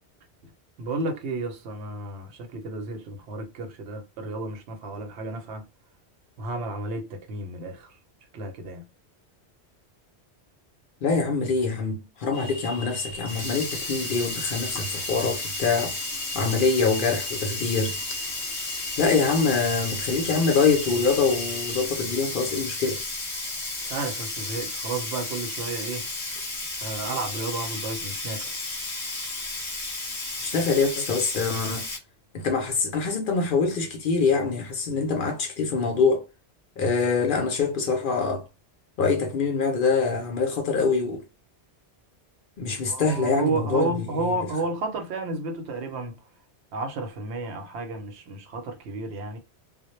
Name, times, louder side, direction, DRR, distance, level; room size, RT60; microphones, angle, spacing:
voice 1, 0.8-5.6 6.4-7.9 8.3-8.9 23.8-26.1 26.8-28.5 42.9-46.2 46.7-49.4, right 2 dB, 75° right, 0.9 m, -32 dB
voice 2, 11.0-16.0 16.3-18.0 19.0-23.0 30.4-31.9 32.3-36.2 36.8-38.4 39.0-41.2 42.6-44.4, left 4 dB, 60° left, 0.6 m, -24 dB
sound 1, 12.3-21.9, left 1 dB, 85° left, 0.9 m, -39 dB
Sink (filling or washing), 13.2-32.0, left 2 dB, 5° left, 0.8 m, -33 dB
2.0 x 2.0 x 2.9 m
omnidirectional pair, 1.1 m